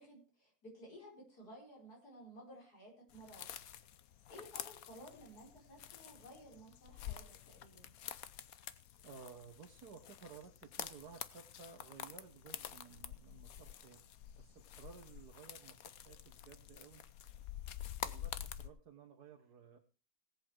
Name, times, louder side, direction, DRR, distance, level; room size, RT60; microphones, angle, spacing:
voice 1, 0.0-3.5 4.3-7.9, equal, 90° left, -1 dB, 5.6 m, -55 dB
sound 1, 3.1-18.7, left 10 dB, 70° left, 1.2 m, -48 dB
voice 2, 9.0-14.1 14.4-17.0 18.0-19.8, right 5 dB, 85° right, 2 dB, 1.8 m, -56 dB
18.0 x 8.1 x 4.6 m, 0.34 s
omnidirectional pair, 1.6 m